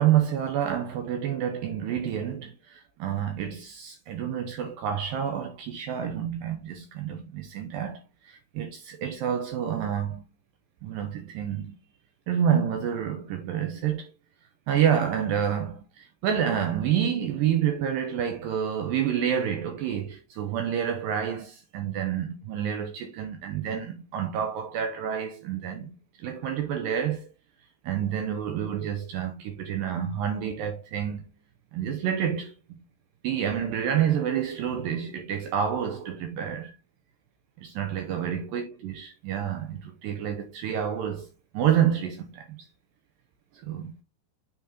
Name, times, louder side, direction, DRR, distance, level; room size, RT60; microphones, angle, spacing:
voice 1, 0.0-10.2 10.8-11.8 12.3-14.1 14.7-27.3 27.8-31.2 31.7-32.5 33.2-36.7 37.6-41.3 41.5-42.7 43.5-43.9, right 9 dB, 85° right, 2.0 m, -28 dB
9.6 x 3.7 x 2.7 m
omnidirectional pair, 4.8 m